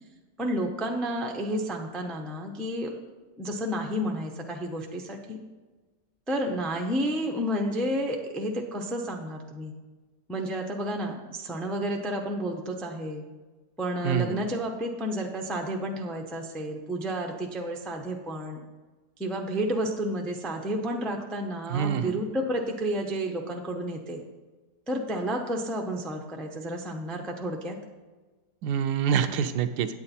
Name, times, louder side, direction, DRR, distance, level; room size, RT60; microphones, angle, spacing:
voice 1, 0.4-3.0 3.4-5.4 6.3-9.7 10.3-13.2 13.8-18.6 19.2-24.2 24.9-27.8, equal, ahead, 1 dB, 0.3 m, -31 dB
voice 2, 14.0-14.4 21.7-22.2 28.6-29.9, right 8 dB, 80° right, 9 dB, 1.2 m, -26 dB
8.8 x 8.6 x 4.2 m, 1.3 s
omnidirectional pair, 1.8 m